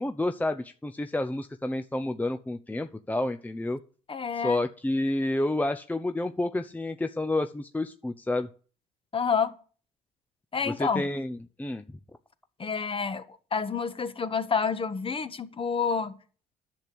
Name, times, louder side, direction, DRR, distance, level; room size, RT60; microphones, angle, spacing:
voice 1, 0.0-3.8 4.3-8.5 10.6-12.0, left 2 dB, 10° left, 0.7 m, -30 dB
voice 2, 4.1-4.6 9.1-9.5 10.5-11.0 12.6-16.2, left 5 dB, 30° left, 1.4 m, -29 dB
10.5 x 6.8 x 7.9 m
supercardioid pair, 75°, 18 cm